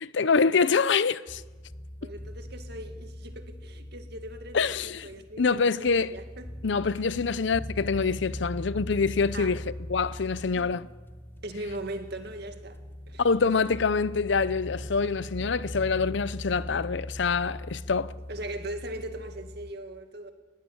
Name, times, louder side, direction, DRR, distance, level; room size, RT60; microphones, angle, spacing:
voice 1, 0.0-1.4 4.5-5.1 5.4-6.1 6.6-10.9 13.2-18.1, left 5 dB, 65° left, 0.6 m, -25 dB
sound 1, 1.3-19.7, left 1 dB, 10° left, 0.8 m, -40 dB
voice 2, 2.0-4.7 5.0-6.5 9.3-9.5 10.5-10.7 11.4-12.8 13.1-13.2 15.4-15.5 18.3-20.3, right 1 dB, 60° right, 2.0 m, -39 dB
20.0 x 16.5 x 8.5 m
head